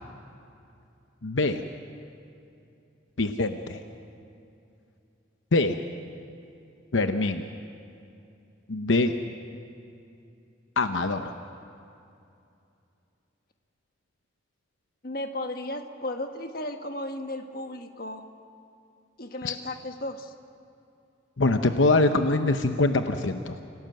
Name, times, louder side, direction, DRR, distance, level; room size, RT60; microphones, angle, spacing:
voice 1, 1.2-1.6 3.2-3.8 5.5-5.8 6.9-7.4 8.7-9.1 10.8-11.3 19.4-19.6 21.4-23.6, left 2 dB, 80° left, 7 dB, 0.9 m, -24 dB
voice 2, 15.0-18.2 19.2-20.3, left 1 dB, 50° left, 6 dB, 1.4 m, -35 dB
28.0 x 18.0 x 7.8 m, 2.6 s
head